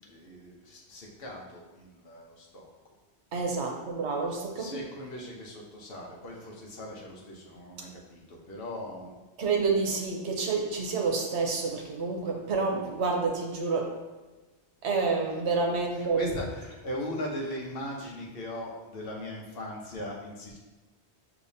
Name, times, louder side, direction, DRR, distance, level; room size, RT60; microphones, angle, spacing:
voice 1, 0.0-2.7 4.4-9.1 15.9-20.6, left 1 dB, 60° left, -1 dB, 1.0 m, -39 dB
voice 2, 3.3-4.8 9.4-14.0 14.8-16.3, right 4 dB, 75° right, 2 dB, 1.0 m, -28 dB
6.6 x 2.8 x 2.7 m, 1.2 s
omnidirectional pair, 1.1 m